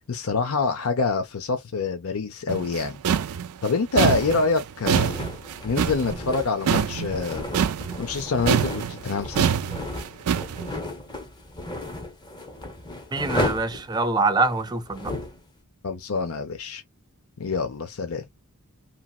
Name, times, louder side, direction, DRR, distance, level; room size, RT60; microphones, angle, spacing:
voice 1, 0.1-3.0 3.6-5.1 5.6-7.5 8.0-9.5 15.8-16.8 17.4-18.2, left 4 dB, 75° left, 0.6 m, -26 dB
sound 1, 2.5-8.2 8.5-10.7, right 7 dB, 85° right, 0.4 m, -25 dB
sound 2, 4.0-15.4, left 1 dB, 20° left, 0.7 m, -34 dB
voice 2, 13.1-15.1, right 3 dB, 20° right, 0.4 m, -24 dB
2.9 x 2.8 x 2.3 m
head